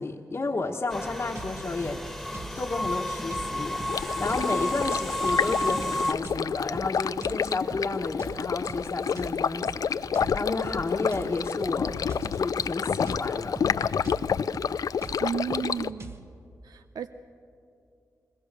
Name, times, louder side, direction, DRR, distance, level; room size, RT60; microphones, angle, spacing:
voice 1, 0.0-2.0 2.5-12.0 12.2-13.6, left 3 dB, 45° left, -1 dB, 1.2 m, -32 dB
sound 1, 0.9-6.1, left 1 dB, ahead, 1.7 m, -31 dB
sound 2, 1.4-16.2, right 3 dB, 40° right, 1.3 m, -44 dB
Stream, 3.9-15.9, left 7 dB, 70° left, 0.4 m, -29 dB
voice 2, 15.2-16.2 16.6-17.1, right 7 dB, 90° right, 9 dB, 0.6 m, -33 dB
21.5 x 21.0 x 6.7 m, 2.5 s
cardioid pair, 75°, 6 cm